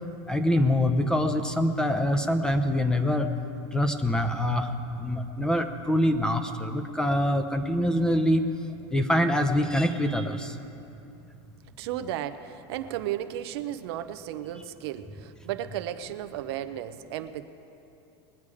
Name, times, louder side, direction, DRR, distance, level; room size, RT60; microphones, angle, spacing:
voice 1, 0.3-3.3 3.7-4.7 5.0-8.4 8.9-10.5, left 1 dB, 5° left, 7 dB, 0.8 m, -25 dB
voice 2, 11.8-17.4, right 11 dB, 65° right, 10 dB, 0.7 m, -34 dB
21.0 x 8.3 x 4.9 m, 2.8 s
supercardioid pair, 130°, 14 cm